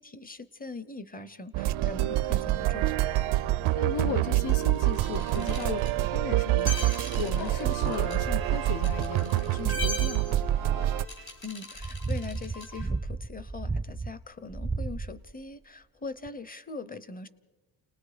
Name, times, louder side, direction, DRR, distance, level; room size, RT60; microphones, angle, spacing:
voice 1, 0.0-3.0 11.4-17.3, left 3 dB, 20° left, 15 dB, 0.9 m, -41 dB
sound 1, 1.5-11.1, right 16 dB, 85° right, 0.6 m, -26 dB
sound 2, 1.7-2.0 2.6-2.7 3.2-3.4 3.9-4.3 5.7-5.8 6.6-7.3 7.8-10.7 11.4-14.1 14.5-15.4 16.3-16.4, right 3 dB, 5° right, 0.6 m, -36 dB
voice 2, 3.7-6.8 7.1-10.5, left 7 dB, 80° left, 11 dB, 1.3 m, -36 dB
sound 3, 4.5-12.9, left 2 dB, 50° left, 4.1 m, -40 dB
29.5 x 19.5 x 5.1 m, 1.2 s
cardioid pair, 125°, 48 cm